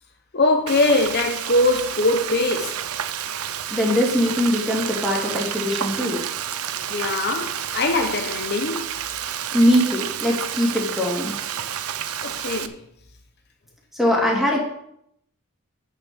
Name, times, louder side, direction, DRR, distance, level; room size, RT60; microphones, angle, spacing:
voice 1, 0.3-2.8 6.9-8.9 12.2-12.7, left 2 dB, 50° left, 0.9 m, -22 dB
Frying (food), 0.7-12.7, right 9 dB, 85° right, 0.7 m, -30 dB
voice 2, 3.7-6.2 9.5-11.3 13.9-14.6, equal, ahead, 2.9 m, -21 dB
9.5 x 6.9 x 6.3 m
head